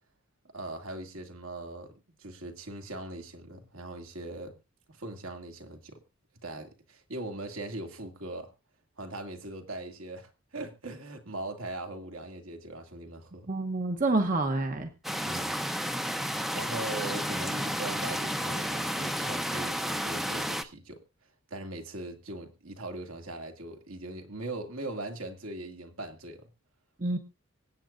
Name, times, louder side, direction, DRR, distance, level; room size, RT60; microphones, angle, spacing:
voice 1, 0.5-1.9 2.2-4.5 4.9-6.0 6.4-8.5 9.0-13.5 15.2-15.6 16.5-21.0 21.5-26.4, right 2 dB, 70° right, 4 dB, 2.3 m, -40 dB
voice 2, 13.5-14.9 27.0-27.2, right 2 dB, 40° right, 6 dB, 1.0 m, -27 dB
sound 1, 15.0-20.6, equal, ahead, 0.6 m, -32 dB
25.0 x 8.5 x 2.5 m, 0.27 s
head